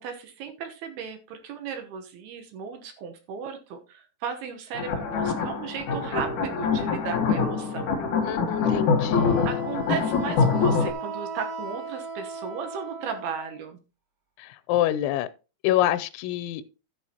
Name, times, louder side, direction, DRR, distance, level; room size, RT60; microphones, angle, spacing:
voice 1, 0.0-7.9 9.4-13.8, right 6 dB, 70° right, 2.8 m, -35 dB
sound 1, 4.7-10.9, left 5 dB, 65° left, 2.0 m, -25 dB
voice 2, 8.3-9.5 14.4-15.3 15.6-16.6, left 13 dB, 90° left, 3.0 m, -26 dB
Wind instrument woodwind instrument, 9.1-13.6, right 2 dB, 50° right, 1.2 m, -37 dB
13.0 x 8.9 x 2.9 m
omnidirectional pair, 5.2 m